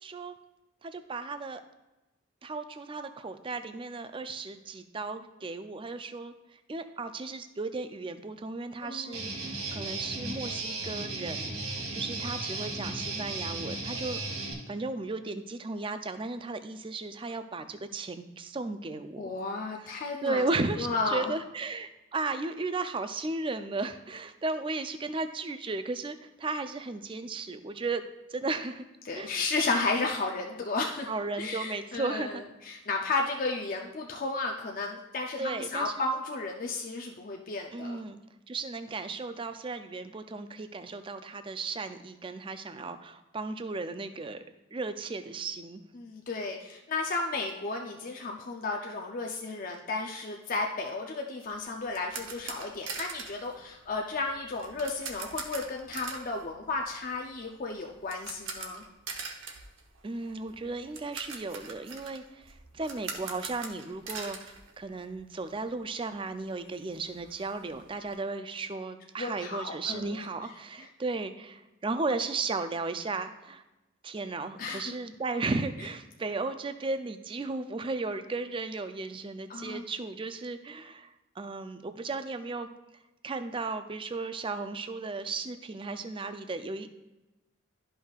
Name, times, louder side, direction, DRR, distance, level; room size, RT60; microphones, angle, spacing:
voice 1, 0.0-0.3 0.8-1.6 2.4-6.3 6.7-19.3 19.8-20.0 20.2-28.0 28.3-28.9 29.1-29.4 31.1-32.4 35.4-35.9 37.7-38.2 38.5-44.4 44.7-45.8 60.0-73.6 74.0-81.1 81.4-82.7 83.2-86.9, right 3 dB, 25° right, 9 dB, 0.4 m, -35 dB
voice 2, 8.8-9.2 19.2-20.5 20.8-21.3 29.1-31.1 31.4-38.0 45.9-58.8 69.2-70.2 74.6-74.9 79.5-79.8, left 3 dB, 40° left, 1 dB, 0.5 m, -33 dB
Guitar, 9.1-14.5, right 2 dB, 80° right, 1.9 m, -35 dB
sound 1, 51.5-65.4 65.7-65.8 66.3-66.4 66.6-68.1, right 4 dB, 60° right, 0.9 m, -43 dB
12.0 x 5.5 x 2.4 m, 1.0 s
head